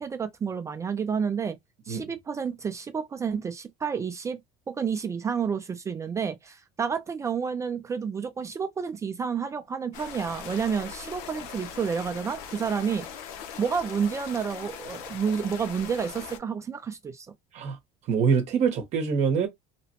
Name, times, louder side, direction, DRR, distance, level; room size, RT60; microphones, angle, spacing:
voice 1, 0.0-1.6 1.9-4.4 4.7-13.1 13.6-17.3, right 6 dB, 20° right, 0.3 m, -30 dB
sound 1, 9.9-16.4, left 7 dB, 85° left, 0.7 m, -40 dB
voice 2, 18.1-19.5, right 6 dB, 45° right, 0.8 m, -24 dB
2.8 x 2.1 x 2.8 m
cardioid pair, 150°, 16 cm